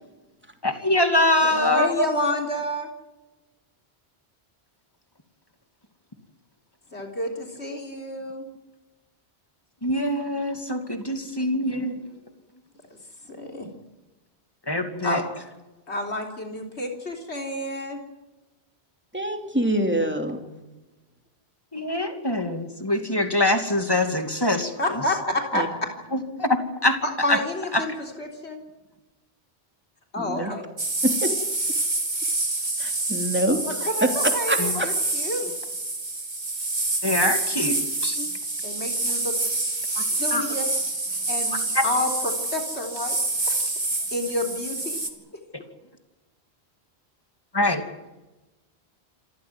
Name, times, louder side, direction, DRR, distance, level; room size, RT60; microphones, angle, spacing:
voice 1, 0.6-2.1 9.8-12.0 14.7-15.2 21.7-24.7 26.1-27.0 27.3-27.4 27.7-27.8 30.4-30.6 34.6-34.7 37.0-37.8 38.0-38.2 40.0-40.1 40.3-40.4 41.7-41.8 45.5-45.6 47.5-47.8, left 1 dB, 20° left, 6 dB, 2.6 m, -24 dB
voice 2, 1.4-2.9 6.9-8.4 13.2-13.7 15.0-15.2 15.9-18.0 24.8-25.6 27.0-27.9 28.2-28.6 30.1-30.7 33.7-35.5 38.6-39.4 39.9-40.7 41.3-41.6 41.8-43.2 43.5-43.6 44.1-45.0, left 1 dB, 85° left, 2 dB, 4.0 m, -29 dB
voice 3, 19.1-20.4 25.5-25.7 30.2-30.5 31.0-31.3 32.8-34.1 34.5-34.9 37.6-37.8 38.2-38.3, right 1 dB, 10° right, 4 dB, 2.9 m, -26 dB
sound 1, 30.8-45.1, right 2 dB, 45° right, 2.6 m, -27 dB
27.0 x 14.5 x 9.6 m, 1.1 s
omnidirectional pair, 1.1 m